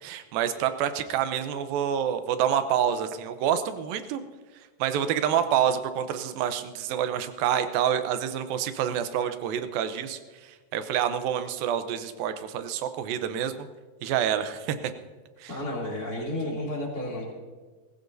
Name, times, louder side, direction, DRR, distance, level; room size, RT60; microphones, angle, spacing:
voice 1, 0.0-4.2 4.8-13.7 14.0-14.9 15.4-15.6, right 9 dB, 90° right, 10 dB, 2.6 m, -27 dB
voice 2, 15.5-17.3, left 1 dB, 25° left, -4 dB, 2.9 m, -32 dB
19.5 x 16.0 x 2.7 m, 1.4 s
omnidirectional pair, 4.0 m